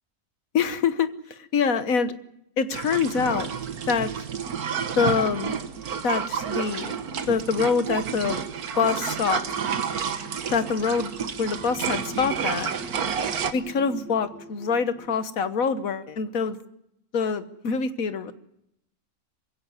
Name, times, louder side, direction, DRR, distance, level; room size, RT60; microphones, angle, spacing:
voice 1, 0.5-2.1 2.6-3.5 3.9-4.1 5.0-5.6 6.0-7.0 7.3-8.4 8.8-9.4 10.5-11.1 11.4-12.7 13.5-16.6 17.1-18.3, left 5 dB, 65° left, 11 dB, 1.6 m, -25 dB
sound 1, 2.7-13.5, right 7 dB, 75° right, 1.6 m, -30 dB
sound 2, 9.3-15.3, equal, 5° right, 1.1 m, -45 dB
22.0 x 16.5 x 9.6 m, 0.80 s
omnidirectional pair, 1.6 m